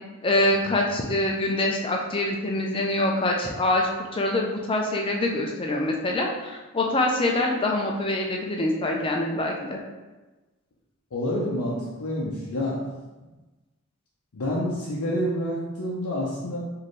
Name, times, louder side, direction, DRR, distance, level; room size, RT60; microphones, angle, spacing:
voice 1, 0.2-9.8, left 1 dB, 25° left, 0 dB, 0.4 m, -25 dB
voice 2, 11.1-12.8 14.3-16.6, left 1 dB, 85° left, -6 dB, 0.6 m, -28 dB
4.2 x 2.7 x 3.2 m, 1.2 s
head